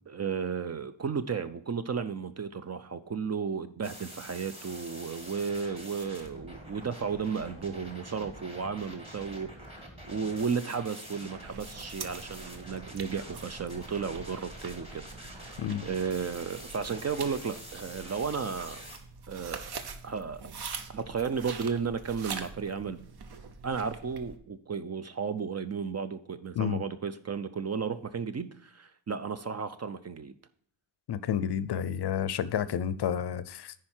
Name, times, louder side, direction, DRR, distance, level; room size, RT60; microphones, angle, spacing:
voice 1, 0.1-15.5 15.8-18.8 19.3-19.6 20.0-20.4 20.9-23.1 23.6-30.3, right 6 dB, 35° right, 12 dB, 0.4 m, -34 dB
sound 1, 3.8-19.0, equal, 10° right, 1.6 m, -46 dB
sound 2, 11.4-24.4, right 5 dB, 55° right, 0.9 m, -44 dB
voice 2, 31.1-33.7, left 9 dB, 60° left, 16 dB, 0.5 m, -30 dB
10.0 x 4.8 x 4.3 m, 0.63 s
wide cardioid pair, 175°, 46 cm